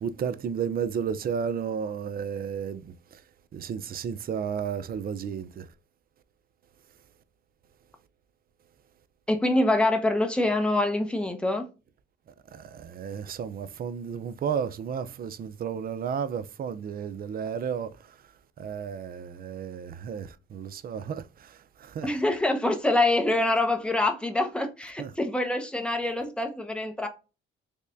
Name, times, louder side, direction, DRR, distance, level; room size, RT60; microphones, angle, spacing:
voice 1, 0.0-3.2 3.5-5.7 12.5-18.2 18.6-22.1 25.0-25.1, right 7 dB, 50° right, 0.5 m, -33 dB
voice 2, 9.3-11.7 22.0-27.1, left 2 dB, 5° left, 0.9 m, -25 dB
3.4 x 3.2 x 2.5 m
cardioid pair, 90°, 20 cm